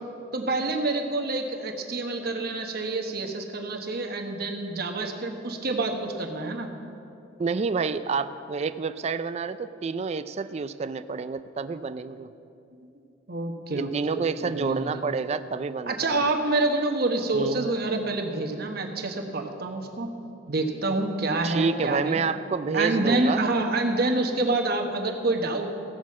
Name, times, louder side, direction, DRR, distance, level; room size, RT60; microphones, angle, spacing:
voice 1, 0.3-6.7 13.3-15.0 15.9-20.1 20.5-22.2 22.7-25.7, right 2 dB, 50° right, 3 dB, 1.1 m, -27 dB
voice 2, 7.4-12.3 13.7-16.3 17.3-17.7 21.4-23.4, right 5 dB, 35° right, 12 dB, 0.3 m, -29 dB
15.5 x 6.2 x 7.3 m, 2.7 s
head